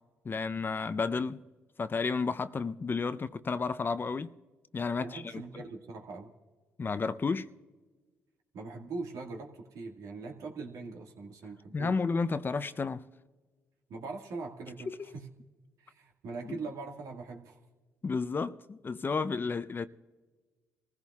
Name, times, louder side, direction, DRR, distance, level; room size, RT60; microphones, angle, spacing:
voice 1, 0.2-1.4 1.8-4.3 4.7-5.4 6.8-7.5 11.7-13.1 14.9-15.0 16.4-16.6 18.0-19.9, left 4 dB, 35° left, 0.6 m, -32 dB
voice 2, 5.0-6.3 8.5-11.9 13.9-15.3 15.8-17.6, right 3 dB, 70° right, 1.9 m, -41 dB
25.5 x 15.5 x 2.4 m
supercardioid pair, 55°, 6 cm